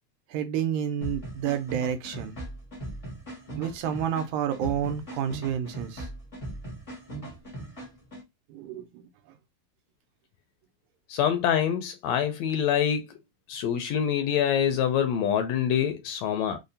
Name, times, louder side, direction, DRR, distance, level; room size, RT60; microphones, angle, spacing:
voice 1, 0.3-2.3 3.6-6.1 8.5-9.0, right 9 dB, 85° right, 2.0 m, -30 dB
sound 1, 1.0-8.2, right 1 dB, 55° left, 0.3 m, -39 dB
voice 2, 11.1-13.1 13.5-16.6, left 9 dB, 80° left, 1.7 m, -25 dB
5.0 x 2.1 x 2.6 m
omnidirectional pair, 3.4 m